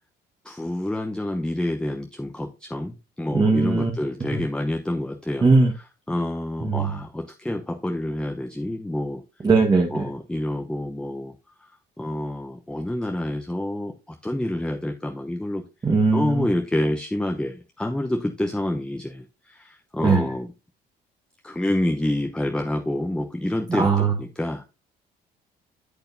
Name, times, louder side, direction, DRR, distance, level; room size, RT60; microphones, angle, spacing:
voice 1, 0.4-5.5 6.1-9.2 9.9-11.3 11.6-11.7 12.0-15.6 16.1-20.5 21.4-24.7, left 1 dB, 5° left, 4 dB, 0.8 m, -28 dB
voice 2, 3.3-3.9 5.4-5.7 6.6-6.9 9.4-10.0 15.8-16.4 20.0-20.3 23.7-24.1, right 3 dB, 25° right, 2 dB, 1.4 m, -19 dB
8.7 x 8.0 x 2.7 m, 0.28 s
cardioid pair, 110°, 17 cm